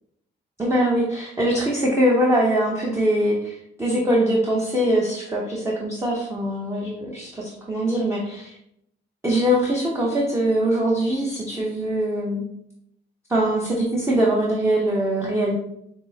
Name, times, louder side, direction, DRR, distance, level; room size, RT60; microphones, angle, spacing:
voice 1, 0.6-8.6 9.2-12.4 13.3-15.5, right 1 dB, 15° right, -4 dB, 0.8 m, -22 dB
6.0 x 2.0 x 2.8 m, 0.76 s
cardioid pair, 90°, 20 cm